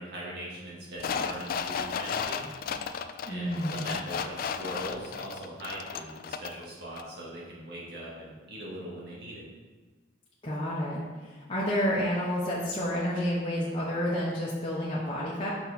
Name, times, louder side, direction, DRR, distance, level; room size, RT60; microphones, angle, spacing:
voice 1, 0.0-2.5 3.3-9.5, right 1 dB, 60° right, -4 dB, 2.0 m, -41 dB
sound 1, 1.0-6.7 7.0-7.1, left 6 dB, 50° left, 0.3 m, -34 dB
voice 2, 3.3-3.8 10.4-15.5, equal, 30° left, -7 dB, 1.0 m, -30 dB
6.0 x 5.9 x 4.2 m, 1.4 s
head